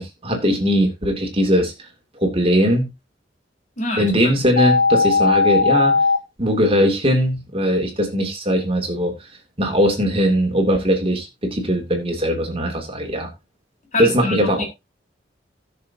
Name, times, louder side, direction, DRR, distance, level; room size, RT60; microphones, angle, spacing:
voice 1, 0.0-1.9 2.2-2.9 4.0-6.0 6.4-9.1 9.6-13.3 14.0-14.6, equal, 30° right, 2.7 m, -20 dB
voice 2, 3.8-4.3 13.9-14.6, left 2 dB, 45° left, 4.4 m, -25 dB
sound 1, 4.6-6.2, left 4 dB, 65° left, 1.9 m, -17 dB
18.0 x 6.7 x 2.9 m
head